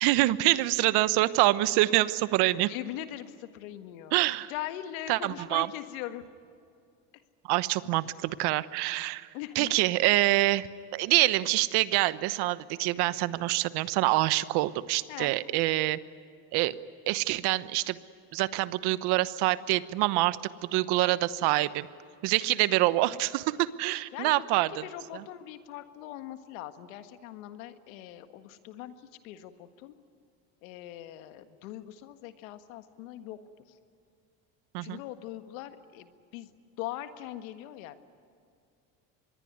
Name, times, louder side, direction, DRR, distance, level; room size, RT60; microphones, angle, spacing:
voice 1, 0.0-2.7 4.1-4.5 5.1-5.7 7.4-9.3 9.5-10.7 10.9-16.0 16.5-16.7 17.1-18.0 18.3-20.4 20.7-21.9 22.2-24.8 25.1-25.2 34.7-35.0, right 17 dB, 75° right, 15 dB, 1.1 m, -26 dB
voice 2, 2.6-4.2 4.5-6.3 9.3-9.7 15.1-15.3 22.5-22.6 24.1-29.0 29.2-29.9 30.6-33.4 34.8-36.5 36.8-38.0, left 13 dB, 90° left, 9 dB, 1.7 m, -41 dB
25.5 x 21.5 x 9.5 m, 2.4 s
supercardioid pair, 95°, 40 cm